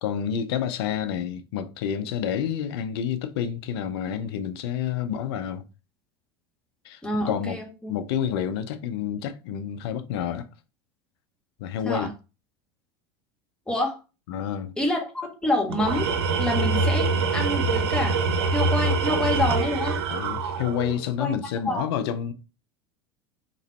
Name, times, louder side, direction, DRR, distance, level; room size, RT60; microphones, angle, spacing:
voice 1, 0.0-5.6 6.8-7.6 7.9-10.5 11.6-12.1 14.3-14.7 20.1-22.3, left 9 dB, 70° left, 0.6 m, -29 dB
voice 2, 7.0-7.9 11.8-12.1 13.7-14.0 14.8-16.1 16.4-18.2 18.5-20.0 21.2-21.3 21.6-21.8, left 1 dB, 5° left, 1.5 m, -27 dB
Tools, 15.7-21.1, right 3 dB, 75° right, 0.7 m, -24 dB
3.9 x 3.0 x 4.2 m
hypercardioid pair, 90°, 13 cm